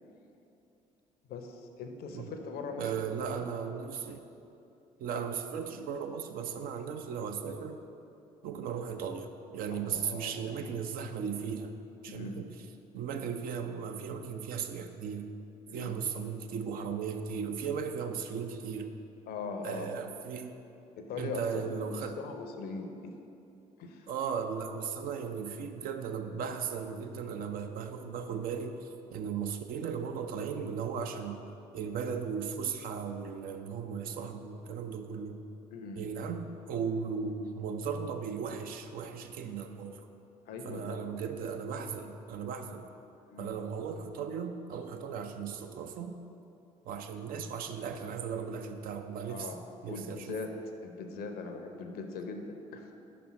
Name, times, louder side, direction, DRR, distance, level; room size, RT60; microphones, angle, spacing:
voice 1, 1.3-2.9 9.7-10.5 12.1-12.4 15.7-16.0 19.3-19.9 21.0-23.1 23.8-24.1 35.7-36.1 40.5-41.0 42.6-42.8 43.3-43.5 49.3-49.6 49.9-50.6 50.8-52.9, left 4 dB, 50° left, 5 dB, 0.6 m, -40 dB
voice 2, 2.8-4.2 5.0-7.8 8.4-11.7 12.0-12.5 12.9-15.3 15.7-18.9 19.6-20.5 21.2-22.2 24.1-31.4 31.7-35.4 36.0-40.1 40.7-42.9 43.4-46.2 46.9-49.5 49.8-50.4, right 6 dB, 50° right, 7 dB, 0.5 m, -36 dB
5.5 x 4.2 x 5.8 m, 2.7 s
figure-of-eight pair, 45°, 19 cm